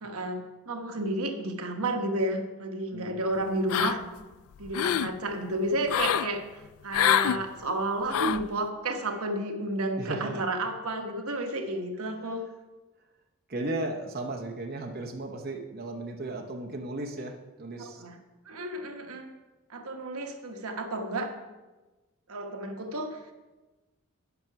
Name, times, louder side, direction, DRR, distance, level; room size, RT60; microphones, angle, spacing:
voice 1, 0.0-4.1 4.6-6.4 6.8-12.5 17.8-18.2 18.5-19.3 19.7-21.3 22.3-23.2, right 1 dB, 75° right, 4 dB, 1.1 m, -31 dB
sound 1, 3.7-4.2 4.6-5.1 5.9-6.3 6.9-7.4 8.1-8.5, left 9 dB, 70° left, 0.3 m, -25 dB
voice 2, 10.0-10.4 13.5-18.0, right 2 dB, 45° right, 1 dB, 0.8 m, -35 dB
9.5 x 5.8 x 5.8 m, 1.2 s
head